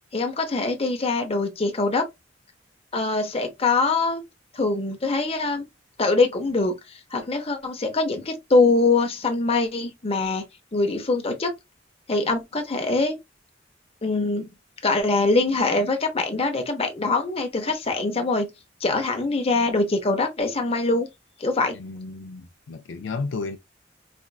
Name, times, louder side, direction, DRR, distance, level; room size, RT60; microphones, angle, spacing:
voice 1, 0.1-2.1 2.9-4.2 4.5-5.6 6.0-6.8 7.1-10.4 10.7-11.5 12.1-13.2 14.0-14.5 14.8-18.5 18.8-21.1 21.4-21.8, left 3 dB, 30° left, 0.8 m, -23 dB
voice 2, 21.7-23.6, left 4 dB, 75° left, 0.5 m, -33 dB
4.3 x 2.4 x 2.3 m
head